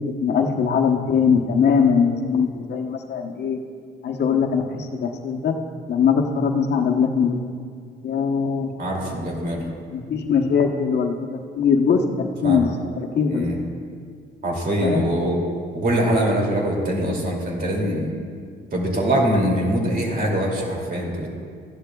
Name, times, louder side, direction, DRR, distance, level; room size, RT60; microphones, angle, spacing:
voice 1, 0.2-3.6 4.0-5.5 5.9-7.4 8.0-8.7 9.9-11.1 11.6-12.7 13.0-13.5 14.8-15.1, left 6 dB, 60° left, 2 dB, 1.0 m, -21 dB
voice 2, 8.8-9.7 12.4-12.6 13.3-13.6 14.4-15.4 15.7-18.1 18.7-21.3, right 1 dB, 45° right, -1 dB, 2.6 m, -23 dB
14.5 x 11.5 x 2.3 m, 2.1 s
cardioid pair, 90°, 20 cm